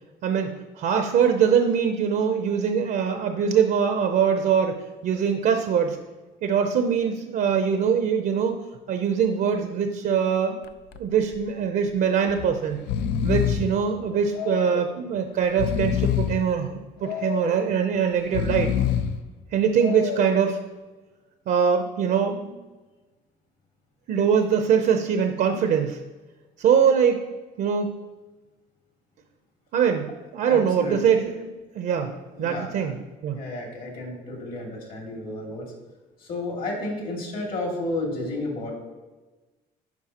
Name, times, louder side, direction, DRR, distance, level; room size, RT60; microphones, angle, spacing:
voice 1, 0.2-6.0 6.4-8.6 8.9-10.6 11.0-12.8 13.2-18.7 19.5-20.6 21.5-22.6 24.1-26.0 26.6-27.2 27.6-27.9 29.7-32.1 32.4-33.4, right 7 dB, 65° right, 5 dB, 0.7 m, -23 dB
Breathing, 10.6-11.0 11.3-11.4 12.3-12.5 12.7-13.8 14.3-15.0 15.4-16.5 17.0-17.7 18.2-19.2 19.8-20.4, left 8 dB, 90° left, 0.5 m, -26 dB
voice 2, 30.4-31.0 32.0-32.1 32.4-32.9 33.3-35.7 36.2-38.7, left 2 dB, 60° left, -1 dB, 2.4 m, -32 dB
11.0 x 4.6 x 2.9 m, 1.2 s
cardioid pair, 110°, 17 cm